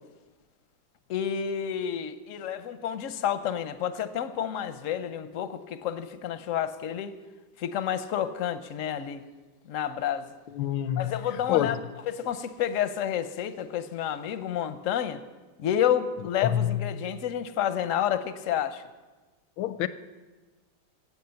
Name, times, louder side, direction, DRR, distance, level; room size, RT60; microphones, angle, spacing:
voice 1, 1.1-7.2 7.6-9.2 9.7-10.3 11.0-11.8 12.0-15.2 15.6-18.8, left 9 dB, 65° left, 0.8 m, -30 dB
voice 2, 10.5-11.1 11.5-11.7 16.4-16.8 19.6-19.9, left 11 dB, 85° left, 1.4 m, -26 dB
16.0 x 8.3 x 6.9 m
omnidirectional pair, 2.1 m